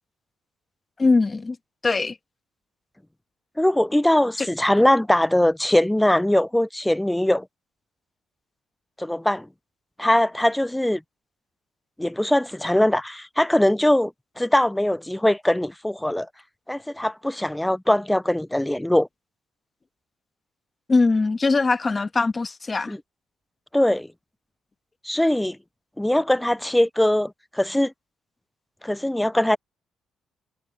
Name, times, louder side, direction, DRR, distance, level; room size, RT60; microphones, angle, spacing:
voice 1, 1.0-1.6 1.8-2.2 4.4-4.5 20.9-22.9, left 3 dB, 30° left, 1.4 m, -21 dB
voice 2, 3.6-7.5 9.0-9.5 10.0-11.0 12.0-14.1 14.4-16.3 16.7-19.1 22.9-23.0 23.7-24.1 25.0-25.6 26.0-27.9 28.8-29.6, left 1 dB, 5° left, 0.4 m, -21 dB
cardioid pair, 90°, 0 cm